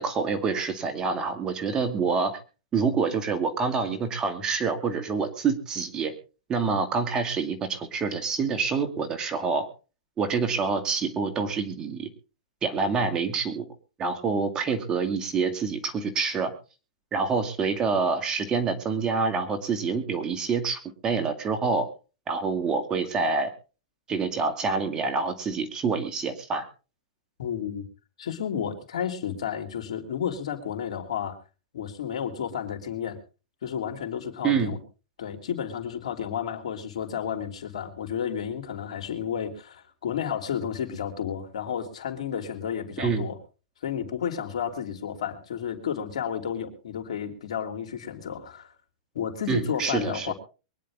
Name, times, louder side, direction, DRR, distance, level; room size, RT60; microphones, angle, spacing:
voice 1, 0.0-2.4 2.7-6.1 6.5-9.7 10.2-12.1 12.6-13.7 14.0-16.5 17.1-21.9 22.3-23.5 24.1-26.7 34.4-34.7 43.0-43.3 49.5-50.3, right 5 dB, 20° right, 7 dB, 2.3 m, -27 dB
voice 2, 27.4-27.8 28.2-31.4 31.7-33.2 33.6-34.8 35.2-43.4 43.8-48.7 49.1-50.3, left 8 dB, 75° left, 5 dB, 3.2 m, -32 dB
23.5 x 10.0 x 3.7 m, 0.34 s
hypercardioid pair, 140°, 4 cm